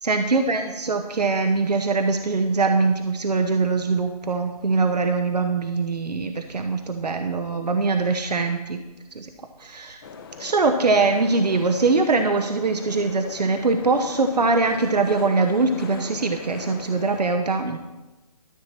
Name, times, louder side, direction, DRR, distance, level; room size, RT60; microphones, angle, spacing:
voice 1, 0.0-8.8 9.1-9.3 9.6-10.0 10.4-17.8, right 3 dB, 90° right, 6 dB, 1.0 m, -22 dB
sound 1, 10.0-17.2, left 5 dB, 35° left, 1.0 m, -40 dB
13.0 x 7.6 x 4.4 m, 1.1 s
hypercardioid pair, 155°, 20 cm